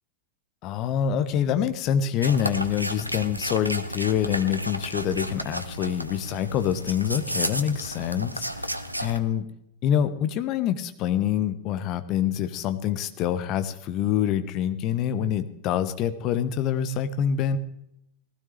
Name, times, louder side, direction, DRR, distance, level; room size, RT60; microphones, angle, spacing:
voice 1, 0.6-8.7 9.0-9.5 9.8-17.6, left 9 dB, 40° left, 10 dB, 1.2 m, -26 dB
sound 1, 2.2-9.2, equal, 85° right, 0.9 m, -32 dB
18.5 x 16.0 x 3.4 m, 0.79 s
figure-of-eight pair, 90°, 0 cm